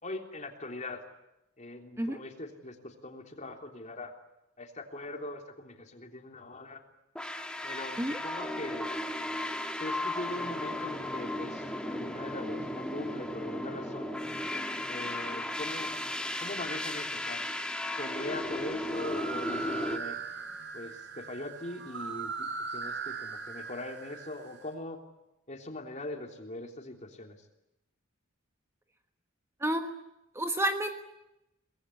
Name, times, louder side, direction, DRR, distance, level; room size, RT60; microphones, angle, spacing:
voice 1, 0.0-1.0 1.6-4.1 4.6-6.8 7.6-8.9 9.8-14.1 14.9-16.0 16.4-17.4 18.0-20.2 20.7-25.0 25.5-27.4, left 2 dB, 35° left, 3 dB, 3.4 m, -41 dB
sound 1, 7.2-20.0, left 1 dB, 5° left, 2.0 m, -35 dB
sound 2, 18.8-24.6, right 4 dB, 60° right, 6.2 m, -39 dB
voice 2, 29.6-30.0 30.3-30.9, right 1 dB, 15° right, 6 dB, 1.3 m, -30 dB
24.0 x 20.5 x 9.9 m, 0.89 s
head